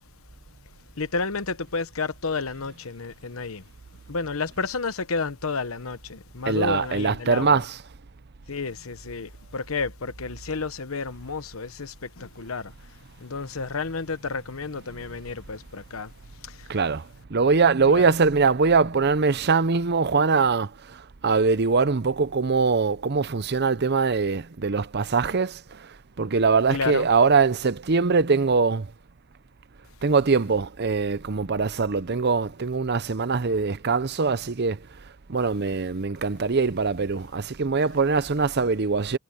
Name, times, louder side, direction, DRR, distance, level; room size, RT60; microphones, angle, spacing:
voice 1, 1.0-3.6 4.1-7.6 8.5-16.1 16.4-16.8 17.9-18.1 26.7-27.1, left 4 dB, 80° left, 1.1 m, -31 dB
voice 2, 6.5-7.8 16.7-25.9 26.2-28.9 30.0-34.8 35.3-39.2, right 4 dB, 50° right, 0.7 m, -22 dB
head